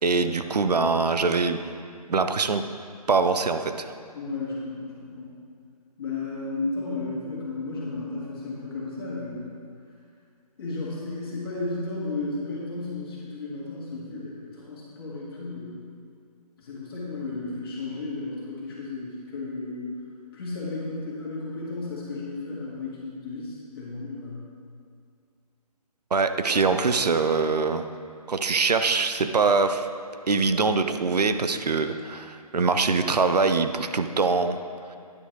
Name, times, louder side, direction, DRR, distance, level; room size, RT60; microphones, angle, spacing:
voice 1, 0.0-1.6 2.1-2.6 3.1-3.9 26.1-27.9 28.3-29.9 30.3-34.6, right 4 dB, 85° right, 9 dB, 0.5 m, -23 dB
voice 2, 4.1-5.3 6.0-9.4 10.6-15.8 16.6-20.0 20.3-24.4, left 3 dB, 35° left, -6 dB, 2.0 m, -33 dB
9.8 x 4.4 x 4.6 m, 2.3 s
figure-of-eight pair, 155°, 20 cm